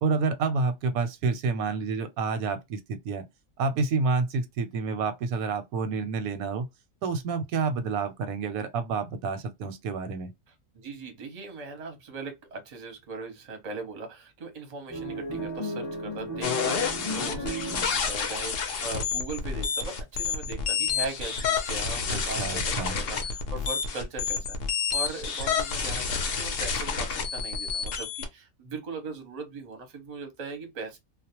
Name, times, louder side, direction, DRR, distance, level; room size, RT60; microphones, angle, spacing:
voice 1, 0.0-3.2 3.6-6.7 7.0-10.3 22.1-23.0, right 4 dB, 85° right, 1.0 m, -29 dB
voice 2, 10.7-31.0, right 3 dB, 40° right, 0.6 m, -39 dB
sound 1, 14.9-18.3, right 1 dB, 25° left, 0.6 m, -35 dB
sound 2, 16.4-28.3, left 6 dB, 60° left, 0.6 m, -29 dB
2.4 x 2.0 x 2.7 m
omnidirectional pair, 1.5 m